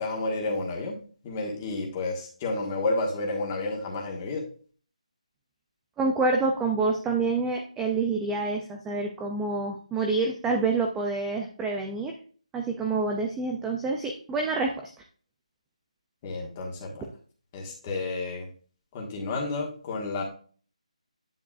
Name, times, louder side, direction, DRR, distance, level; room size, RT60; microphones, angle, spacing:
voice 1, 0.0-4.4 16.2-17.0 17.5-18.5 18.9-20.2, left 2 dB, 15° left, -1 dB, 1.5 m, -31 dB
voice 2, 6.0-12.1 12.5-14.9, right 3 dB, 5° right, 2 dB, 0.3 m, -27 dB
9.9 x 6.9 x 2.4 m, 0.42 s
hypercardioid pair, 175°, 4 cm